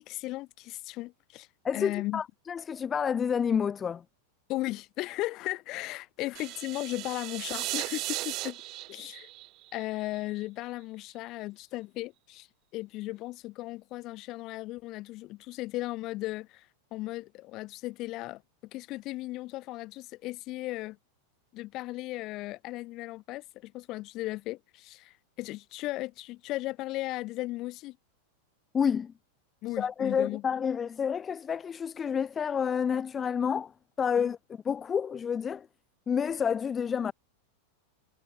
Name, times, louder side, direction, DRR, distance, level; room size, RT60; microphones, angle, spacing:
voice 1, 0.0-1.5 1.7-2.2 4.5-8.6 8.9-9.3 9.7-12.5 12.7-16.7 16.9-18.4 18.7-21.0 21.5-28.0 29.6-30.4 34.2-34.3, left 18 dB, 40° left, 1.9 m, -36 dB
voice 2, 1.6-4.0 28.7-29.1 29.8-33.7 34.0-34.4 34.7-35.7 36.1-37.1, left 7 dB, 20° left, 0.5 m, -29 dB
sound 1, 6.3-10.4, right 20 dB, 40° right, 3.2 m, -37 dB
figure-of-eight pair, 90°, 0 cm